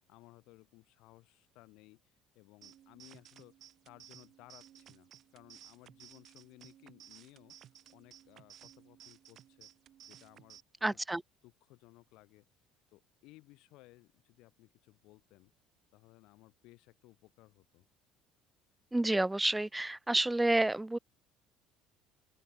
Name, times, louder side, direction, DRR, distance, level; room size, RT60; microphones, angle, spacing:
voice 1, 0.1-3.5 3.8-9.7 10.1-10.6 10.9-11.0 11.4-12.4 12.9-15.5 15.9-17.8, left 21 dB, 75° left, 4.8 m, -60 dB
sound 1, 2.6-10.6, right 11 dB, 50° right, 3.6 m, -57 dB
voice 2, 10.8-11.2 18.9-21.0, right 2 dB, 10° right, 0.4 m, -29 dB
open air
cardioid pair, 115°, 0 cm